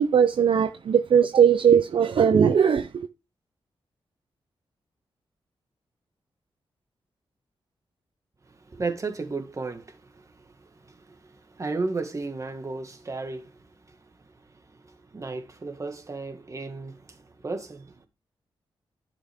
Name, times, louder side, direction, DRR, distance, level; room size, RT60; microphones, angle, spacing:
voice 1, 0.0-3.1, right 7 dB, 65° right, 0.7 m, -19 dB
voice 2, 8.6-14.0 14.8-18.1, right 3 dB, 35° right, 1.8 m, -34 dB
11.0 x 6.0 x 3.6 m
cardioid pair, 95°, 10 cm